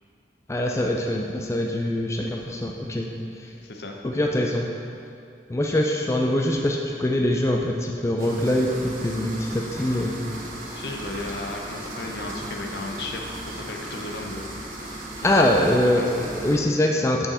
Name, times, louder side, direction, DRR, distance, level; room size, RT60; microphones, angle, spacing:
voice 1, 0.5-3.1 4.0-4.7 5.5-10.2 15.2-16.0 16.4-17.3, left 1 dB, 15° left, 0 dB, 0.4 m, -23 dB
voice 2, 3.6-4.0 10.7-14.5 15.2-16.3, left 2 dB, 70° left, 2 dB, 0.7 m, -35 dB
sound 1, 8.2-16.6, right 1 dB, 50° right, 1.0 m, -36 dB
7.3 x 5.4 x 4.1 m, 2.5 s
head